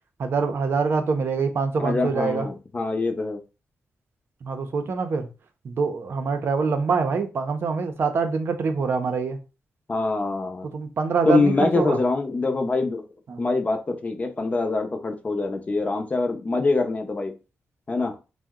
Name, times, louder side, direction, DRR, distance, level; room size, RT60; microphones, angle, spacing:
voice 1, 0.2-2.5 4.4-5.3 5.6-9.4 10.7-12.0 13.3-13.4, right 5 dB, 60° right, 6 dB, 0.6 m, -25 dB
voice 2, 1.8-3.4 9.9-10.7 11.3-13.0 13.4-17.4 17.9-18.2, left 3 dB, 30° left, 4 dB, 0.6 m, -24 dB
2.7 x 2.1 x 3.5 m, 0.30 s
wide cardioid pair, 105°, 5 cm